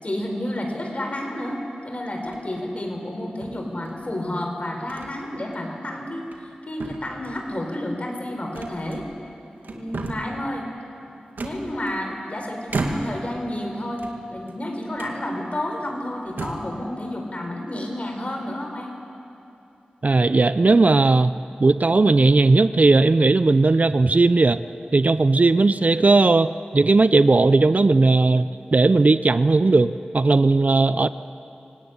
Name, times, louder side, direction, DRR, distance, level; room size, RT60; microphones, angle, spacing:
voice 1, 0.0-9.1 9.7-10.7 11.4-18.9, left 1 dB, 45° left, 3 dB, 4.6 m, -30 dB
sound 1, 2.2-2.6 3.4-4.2 4.9-5.1 5.5-5.7 6.2-6.5 6.8-7.5 8.5-9.3 9.6-10.4 11.4-12.2 12.7-13.3 13.9-14.6 15.0-15.2 15.8-15.9 16.3-16.8, right 2 dB, 85° right, 2.1 m, -33 dB
voice 2, 20.0-21.3 21.6-24.6 24.9-31.1, right 3 dB, 50° right, 13 dB, 0.6 m, -17 dB
25.0 x 17.5 x 9.7 m, 2.7 s
cardioid pair, 45°, 3 cm